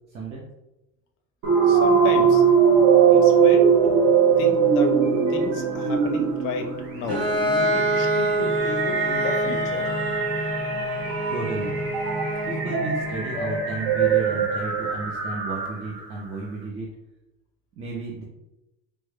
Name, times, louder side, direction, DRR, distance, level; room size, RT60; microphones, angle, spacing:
voice 1, 0.1-0.4 11.3-11.7 12.5-16.9 17.8-18.2, right 3 dB, 25° right, -4 dB, 0.3 m, -33 dB
sound 1, 1.4-16.0, right 6 dB, 55° right, 0.7 m, -21 dB
voice 2, 1.7-2.4 3.1-4.1 4.4-5.0 5.3-9.9, left 2 dB, 45° left, 4 dB, 0.5 m, -32 dB
Bowed string instrument, 7.1-12.7, right 1 dB, 90° right, 0.9 m, -26 dB
3.3 x 2.0 x 3.1 m, 0.94 s
cardioid pair, 155°, 30 cm